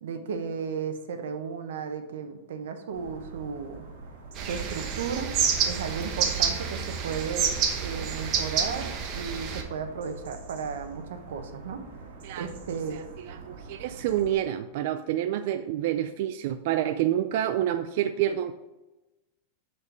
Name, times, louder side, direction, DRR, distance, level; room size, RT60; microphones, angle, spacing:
voice 1, 0.0-3.9 4.5-5.3 5.6-11.8 12.4-13.0, right 6 dB, 90° right, 7 dB, 0.9 m, -34 dB
sound 1, 2.9-14.3, right 3 dB, 70° right, 1.6 m, -45 dB
sound 2, 4.4-9.6, right 7 dB, 30° right, 0.8 m, -28 dB
voice 2, 12.9-18.5, right 11 dB, 55° right, 9 dB, 0.3 m, -28 dB
7.1 x 4.2 x 4.6 m, 1.1 s
supercardioid pair, 165°, 0 cm